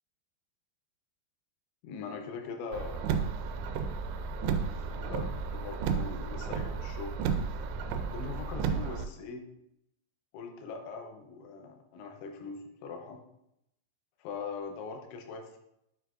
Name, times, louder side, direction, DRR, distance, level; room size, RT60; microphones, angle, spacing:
voice 1, 1.8-3.2 4.5-7.2 8.1-9.4 10.3-13.2 14.2-15.6, left 5 dB, 90° left, 4 dB, 3.1 m, -41 dB
Car, 2.7-9.1, right 6 dB, 85° right, 2.9 m, -33 dB
9.5 x 4.6 x 2.5 m, 0.81 s
omnidirectional pair, 5.3 m